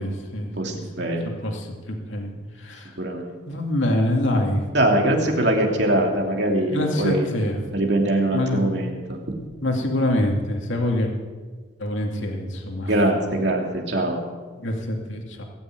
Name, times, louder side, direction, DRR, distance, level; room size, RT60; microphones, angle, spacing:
voice 1, 0.0-1.1 1.4-2.9 3.4-4.6 6.3-6.4 6.7-7.6 8.3-8.6 9.6-11.1 11.8-12.9 14.6-15.4, left 1 dB, 70° left, 1 dB, 2.4 m, -25 dB
voice 2, 0.6-1.3 3.0-3.2 4.7-7.3 7.7-9.2 12.9-13.6 13.9-14.2, right 1 dB, 55° right, 1 dB, 2.7 m, -22 dB
21.0 x 7.1 x 9.1 m, 1.4 s
head